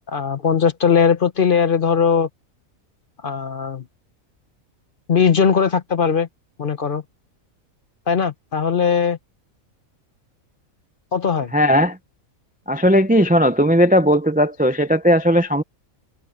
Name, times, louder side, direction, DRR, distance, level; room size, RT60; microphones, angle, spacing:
voice 1, 0.1-2.3 3.2-3.8 5.1-6.3 6.6-7.0 8.1-9.2 11.1-11.5, left 6 dB, 40° left, 1.0 m, -19 dB
voice 2, 11.5-12.0 12.7-15.6, equal, 10° right, 0.4 m, -16 dB
open air
omnidirectional pair, 1.5 m